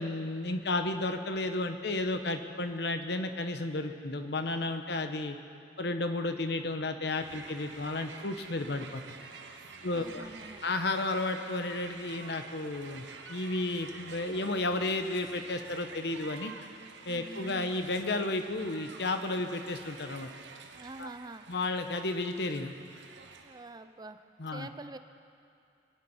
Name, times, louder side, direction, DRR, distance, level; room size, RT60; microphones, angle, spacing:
voice 1, 0.0-5.4 5.8-9.0 9.8-10.3 10.6-16.5 17.1-20.3 21.0-21.1 21.5-22.7 24.4-24.7, left 2 dB, 65° left, 7 dB, 1.0 m, -32 dB
Crowd, 7.0-23.7, right 4 dB, 85° right, 1.1 m, -49 dB
voice 2, 9.6-10.6 17.1-17.7 20.7-21.5 23.4-25.0, right 2 dB, 25° right, 10 dB, 0.5 m, -46 dB
23.0 x 9.7 x 5.7 m, 2.5 s
head